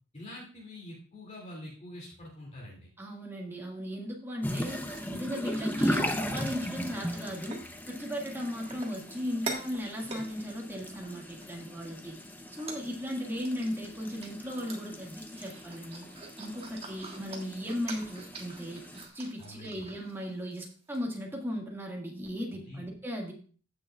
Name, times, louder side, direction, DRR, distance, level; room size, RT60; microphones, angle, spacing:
voice 1, 0.1-2.9 19.4-19.9 22.5-22.8, left 1 dB, 30° left, -4 dB, 2.6 m, -45 dB
voice 2, 3.0-4.8 5.1-12.2 12.5-16.1 16.4-23.3, equal, 10° right, -1 dB, 1.9 m, -36 dB
sound 1, 4.4-19.1, equal, 10° left, 0.7 m, -38 dB
sound 2, 4.7-7.1 7.5-7.6 8.1-11.5 11.9-12.2 12.5-20.3 20.5-20.7 20.9-21.0, right 3 dB, 30° right, 1.6 m, -46 dB
16.0 x 6.3 x 2.4 m, 0.41 s
head